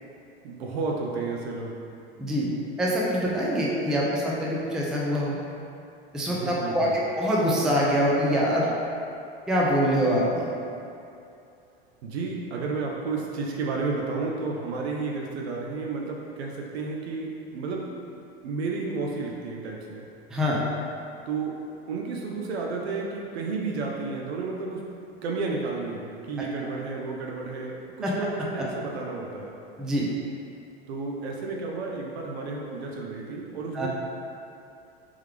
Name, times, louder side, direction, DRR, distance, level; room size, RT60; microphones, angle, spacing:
voice 1, 0.4-1.7 6.3-7.0 12.0-17.9 18.4-20.1 21.3-21.6 21.9-24.9 25.2-29.5 30.9-33.9, right 4 dB, 80° right, -1 dB, 0.6 m, -32 dB
voice 2, 2.2-2.5 2.8-5.4 6.1-6.9 7.2-8.7 9.5-10.5 20.3-20.6 28.0-28.1 29.8-30.1 33.7-33.9, equal, ahead, -5 dB, 0.4 m, -24 dB
3.6 x 3.2 x 3.2 m, 2.6 s
hypercardioid pair, 105°, 32 cm